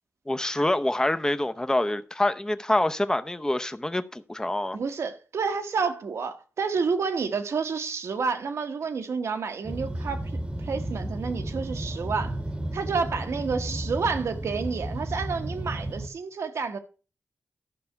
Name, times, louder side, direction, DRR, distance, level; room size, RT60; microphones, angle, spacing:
voice 1, 0.3-4.8, left 1 dB, 15° left, 0.7 m, -26 dB
voice 2, 4.7-12.4 12.7-16.8, right 5 dB, 85° right, 1.2 m, -29 dB
sound 1, 9.6-16.1, right 1 dB, 20° right, 1.0 m, -33 dB
12.0 x 5.6 x 5.6 m
cardioid pair, 60°, 5 cm